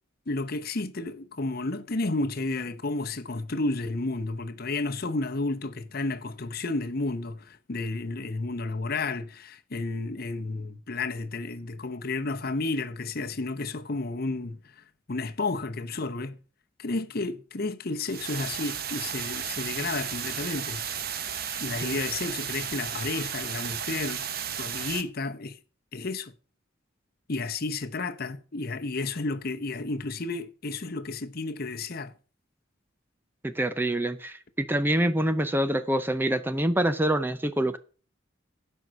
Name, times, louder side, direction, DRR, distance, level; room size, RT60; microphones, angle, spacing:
voice 1, 0.3-16.4 16.8-20.8 21.6-24.2 24.6-25.6 25.9-26.3 27.3-32.1, left 3 dB, 50° left, 0.8 m, -32 dB
sound 1, 18.1-25.0, right 8 dB, 50° right, 1.0 m, -34 dB
voice 2, 33.4-37.8, right 1 dB, 10° right, 0.5 m, -26 dB
12.5 x 5.5 x 6.3 m
head